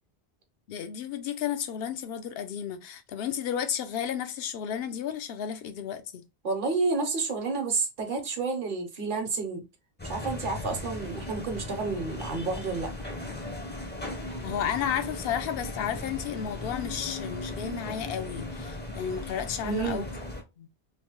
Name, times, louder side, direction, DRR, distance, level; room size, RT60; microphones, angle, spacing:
voice 1, 0.7-6.2 14.4-20.1 20.6-20.7, left 8 dB, 70° left, 0.7 m, -33 dB
voice 2, 6.4-9.6 10.0-12.9 19.6-20.0, right 4 dB, 55° right, 0.9 m, -30 dB
sound 1, 10.0-20.4, left 2 dB, 15° left, 0.5 m, -37 dB
3.1 x 2.1 x 3.0 m
omnidirectional pair, 1.1 m